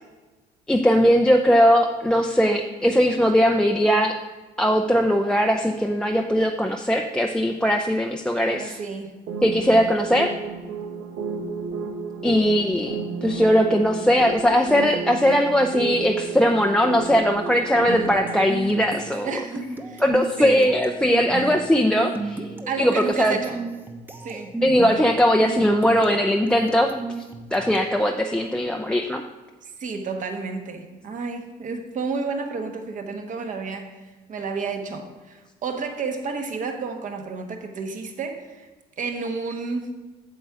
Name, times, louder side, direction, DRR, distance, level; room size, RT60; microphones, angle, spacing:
voice 1, 0.7-4.1 4.6-8.8 9.4-10.3 12.2-19.3 20.0-22.4 22.8-23.4 24.6-26.9 27.5-29.2, equal, 5° left, 3 dB, 0.5 m, -20 dB
voice 2, 8.4-9.1 19.2-20.0 20.4-20.7 22.7-23.6 24.2-24.7 29.6-33.9 34.3-38.7 39.0-39.9, right 4 dB, 50° right, 5 dB, 1.3 m, -31 dB
sound 1, 9.3-18.6, right 5 dB, 80° right, 1.5 m, -32 dB
sound 2, 17.8-28.0, right 3 dB, 10° right, 0.9 m, -34 dB
8.2 x 7.1 x 4.8 m, 1.2 s
cardioid pair, 110°, 17 cm